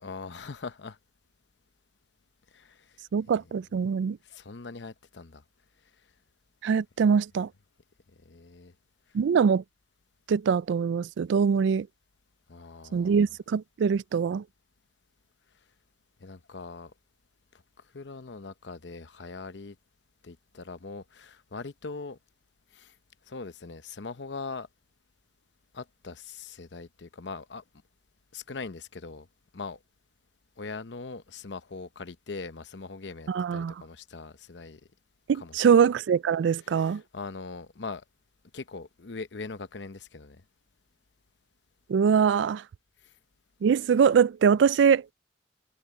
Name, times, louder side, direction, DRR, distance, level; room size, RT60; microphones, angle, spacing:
voice 1, 0.0-1.0 2.5-3.5 4.2-5.4 8.2-8.7 12.5-13.3 16.2-16.9 17.5-19.8 20.2-22.2 22.7-22.9 23.3-24.7 25.7-27.6 28.3-29.3 29.5-29.8 30.6-34.8 35.3-35.8 36.6-38.0 38.5-40.4 43.0-43.1, left 4 dB, 70° left, 0.8 m, -41 dB
voice 2, 3.1-4.2 6.6-7.5 9.1-9.6 10.3-11.9 12.9-14.4 33.3-33.7 35.3-37.0 41.9-42.6 43.6-45.0, right 6 dB, 75° right, 0.3 m, -23 dB
head